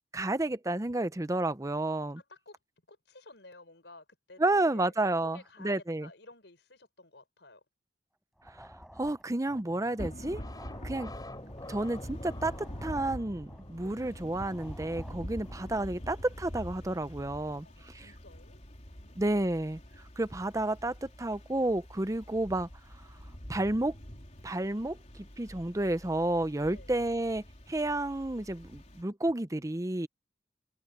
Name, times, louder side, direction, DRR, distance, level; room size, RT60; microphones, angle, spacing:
voice 1, 0.1-2.2 4.4-6.1 9.0-10.4 10.8-11.1 11.7-12.6 12.8-18.1 19.2-19.8 20.2-22.7 23.5-23.9 24.4-30.1, right 2 dB, 20° right, 0.7 m, -31 dB
voice 2, 1.8-2.6 2.9-7.6 13.8-14.0 17.6-18.6 18.9-19.2 26.6-26.9, left 2 dB, 75° left, 6.4 m, -54 dB
sound 1, 8.4-15.7, equal, ahead, 5.0 m, -53 dB
sound 2, 9.5-18.2, left 1 dB, 25° left, 3.2 m, -51 dB
Thunder / Rain, 10.0-29.0, equal, 40° left, 3.5 m, -45 dB
head